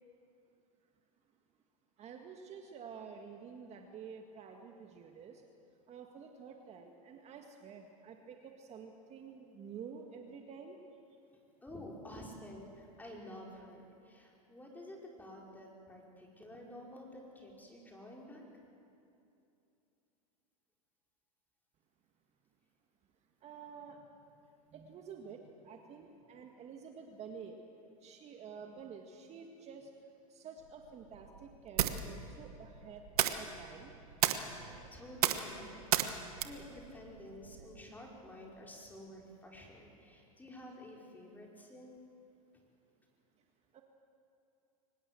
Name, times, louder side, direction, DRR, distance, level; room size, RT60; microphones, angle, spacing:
voice 1, 2.0-5.4 5.9-10.8 23.4-24.0 24.7-27.5 28.0-29.9 30.3-33.0 33.4-33.9 43.7-43.8, right 6 dB, 35° right, 3 dB, 1.9 m, -49 dB
voice 2, 11.6-18.4 34.6-42.0, left 1 dB, 10° left, -1 dB, 5.2 m, -51 dB
sound 1, 30.6-37.8, right 10 dB, 85° right, 1.3 m, -36 dB
24.0 x 19.5 x 7.7 m, 2.7 s
hypercardioid pair, 110°, 19 cm